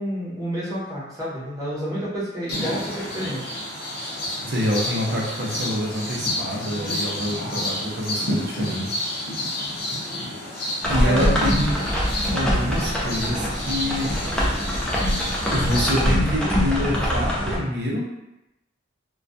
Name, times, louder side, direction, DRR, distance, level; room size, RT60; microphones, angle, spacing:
voice 1, 0.0-3.5 10.8-11.3, equal, 20° right, -8 dB, 0.8 m, -30 dB
sound 1, 2.5-16.0, left 1 dB, 50° left, 0.6 m, -30 dB
voice 2, 4.4-9.0 10.9-11.7 12.3-14.1 15.5-18.1, equal, 60° right, -2 dB, 0.6 m, -26 dB
sound 2, 10.8-17.6, equal, 5° left, 0.4 m, -23 dB
2.2 x 2.2 x 2.6 m, 0.91 s
head